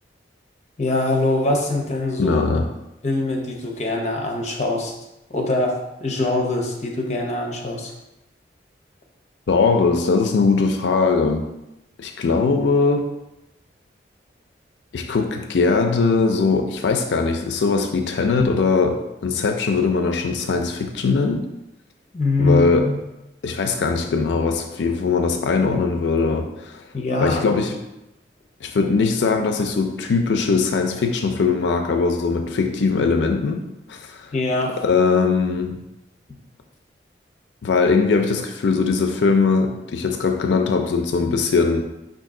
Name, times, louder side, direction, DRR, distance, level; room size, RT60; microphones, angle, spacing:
voice 1, 0.8-2.4 3.0-4.9 5.3-7.9 22.1-23.0 26.9-27.5 34.3-34.8, left 2 dB, 40° left, 0 dB, 0.7 m, -23 dB
voice 2, 2.2-2.7 9.5-11.4 12.0-13.1 14.9-21.5 22.4-22.9 23.4-26.9 27.2-27.8 28.6-34.3 34.7-35.8 37.6-41.8, left 4 dB, 80° left, 5 dB, 0.4 m, -20 dB
5.3 x 2.6 x 3.7 m, 0.92 s
head